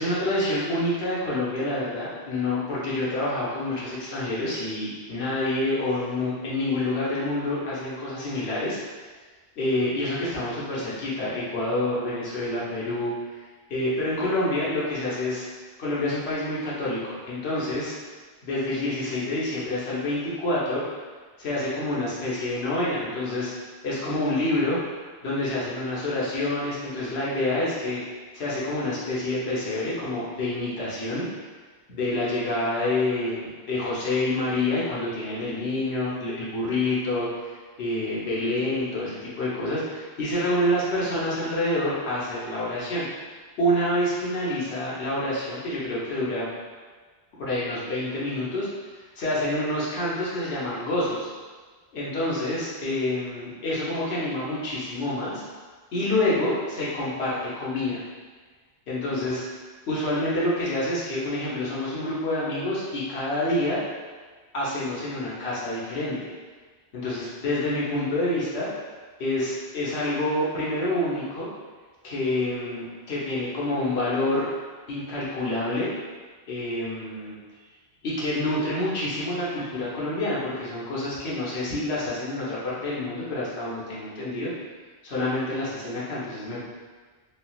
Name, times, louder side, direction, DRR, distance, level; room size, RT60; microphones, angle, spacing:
voice 1, 0.0-8.8 9.6-13.4 13.7-15.5 15.8-17.9 18.4-20.8 21.4-23.5 23.8-24.8 25.2-28.0 28.3-31.3 31.9-43.1 43.6-46.5 47.4-48.7 48.9-51.3 51.9-55.4 55.9-58.0 58.9-59.4 59.9-63.8 64.5-66.2 66.9-68.7 69.2-71.5 72.0-74.5 74.9-75.9 76.5-77.4 78.0-84.5 85.0-86.6, left 1 dB, 85° left, -7 dB, 1.1 m, -27 dB
3.2 x 2.4 x 2.3 m, 1.4 s
omnidirectional pair, 1.1 m